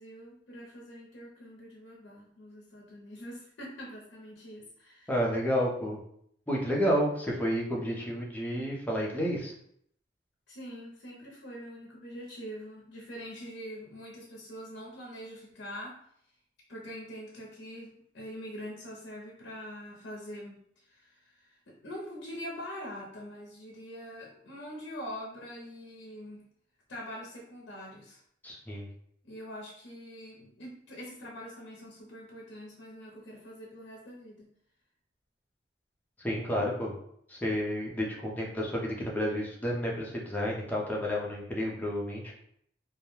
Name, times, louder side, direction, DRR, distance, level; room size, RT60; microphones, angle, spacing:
voice 1, 0.0-5.1 10.5-16.0 16.7-26.4 26.9-28.2 29.2-34.5, equal, 65° left, -2 dB, 0.5 m, -44 dB
voice 2, 5.1-6.0 6.5-9.5 28.4-28.9 36.2-36.9 37.3-42.3, equal, 10° left, -3 dB, 0.5 m, -30 dB
2.3 x 2.1 x 3.0 m, 0.69 s
head